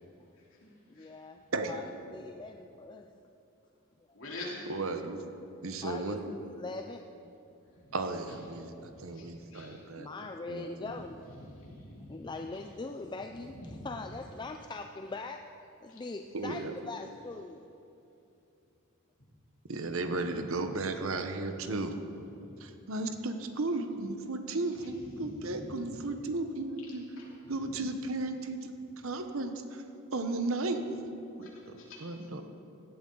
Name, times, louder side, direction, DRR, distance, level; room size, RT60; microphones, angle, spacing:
voice 1, 0.9-1.9 2.1-3.1 5.8-7.4 9.9-11.2 12.1-13.6 13.8-15.5 15.8-17.6, left 3 dB, 20° left, 5 dB, 0.4 m, -41 dB
voice 2, 4.1-4.6 7.7-8.0 8.8-9.8 11.3-12.4 13.5-14.0 15.9-16.0 20.0-20.5 21.6-21.7 22.2-22.7 24.8-26.0 27.2-27.8 31.4-32.3, left 1 dB, 60° left, -4 dB, 3.2 m, -47 dB
voice 3, 4.7-5.2 5.6-6.2 7.9-10.1 10.5-10.9 16.3-16.7 19.7-21.9 22.6-27.0 27.5-28.7 29.0-29.8 30.1-30.8 31.4-32.4, right 2 dB, 70° right, 7 dB, 0.9 m, -35 dB
17.0 x 12.0 x 3.9 m, 2.7 s
head